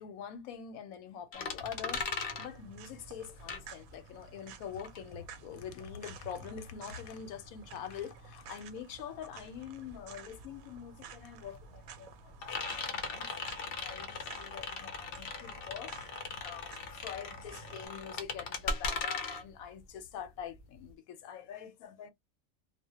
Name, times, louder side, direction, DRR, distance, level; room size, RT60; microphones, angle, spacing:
voice 1, 0.0-16.1 16.4-22.1, left 8 dB, 90° left, 1.0 m, -45 dB
sound 1, 1.3-4.2 4.5-20.9, left 4 dB, 55° left, 0.7 m, -39 dB
sound 2, 1.6-17.9, right 6 dB, 85° right, 1.0 m, -53 dB
2.3 x 2.1 x 2.7 m
omnidirectional pair, 1.4 m